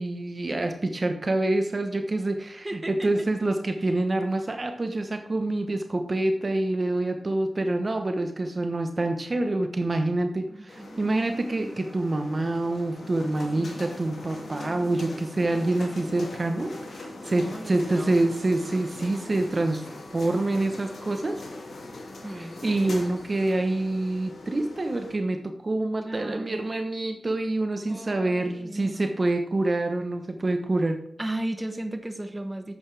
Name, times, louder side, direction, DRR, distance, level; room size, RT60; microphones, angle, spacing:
voice 1, 0.0-19.8 20.1-21.4 22.3-31.0, right 2 dB, 45° right, 6 dB, 1.0 m, -26 dB
voice 2, 2.6-3.3 10.5-11.1 13.6-13.9 15.5-15.9 17.3-18.3 22.2-22.6 26.0-26.7 27.9-29.1 31.2-32.8, right 1 dB, 20° right, 7 dB, 1.2 m, -36 dB
sound 1, 10.7-25.1, left 2 dB, 75° left, 2.3 m, -41 dB
9.8 x 8.0 x 3.4 m, 0.71 s
cardioid pair, 55°, 0 cm